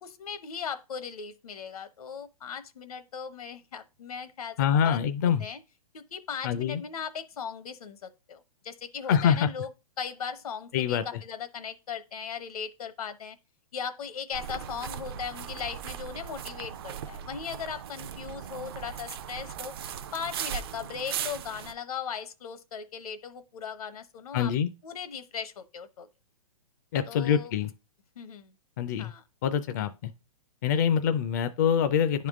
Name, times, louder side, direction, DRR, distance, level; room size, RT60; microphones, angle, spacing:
voice 1, 0.0-5.6 5.9-9.7 10.0-13.4 13.7-19.7 20.1-24.5 24.8-26.1 27.0-27.5 28.2-28.5 29.0-29.2, left 7 dB, 80° left, 1.0 m, -38 dB
voice 2, 4.6-5.4 6.4-6.8 9.1-9.5 10.7-11.0 24.3-24.7 26.9-27.7 28.8-29.1 29.4-30.1 30.6-32.3, left 8 dB, 30° left, 0.4 m, -25 dB
sound 1, 14.3-21.7, right 9 dB, 45° right, 0.5 m, -38 dB
10.5 x 3.6 x 3.6 m
hypercardioid pair, 165°, 18 cm